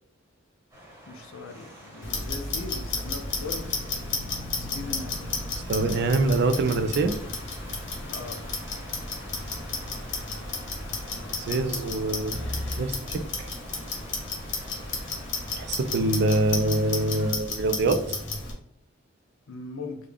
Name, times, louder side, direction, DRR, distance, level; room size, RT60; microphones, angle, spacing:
sound 1, 0.7-17.3, right 1 dB, 10° right, 1.0 m, -47 dB
voice 1, 1.1-4.1 4.5-5.4 8.1-8.5 19.5-20.0, left 3 dB, 80° left, 5 dB, 0.6 m, -39 dB
Clock, 2.0-18.5, left 3 dB, 60° left, 0.8 m, -33 dB
voice 2, 5.7-7.1 11.4-12.3 12.8-13.5 15.6-18.2, right 2 dB, 55° right, 9 dB, 0.4 m, -25 dB
3.6 x 2.3 x 3.4 m, 0.66 s
head